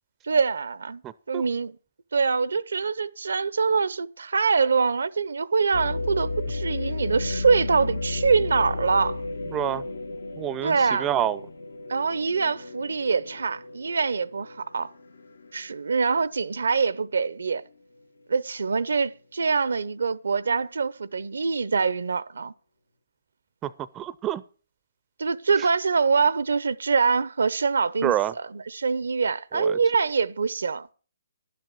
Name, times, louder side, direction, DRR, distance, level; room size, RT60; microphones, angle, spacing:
voice 1, 0.2-1.0 1.3-1.8 2.1-9.2 10.6-11.1 11.9-14.9 15.5-17.6 18.3-22.5 25.2-30.9, right 5 dB, 75° right, 0.6 m, -24 dB
voice 2, 1.0-1.4 9.5-9.8 10.4-10.7 11.0-11.4 23.6-23.7 24.0-24.4 28.0-28.3 29.5-29.8, right 11 dB, 20° right, 0.5 m, -27 dB
sound 1, 5.7-15.7 16.2-16.3 16.9-17.3, left 2 dB, 80° left, 1.1 m, -33 dB
11.5 x 7.6 x 6.9 m
hypercardioid pair, 145°, 0 cm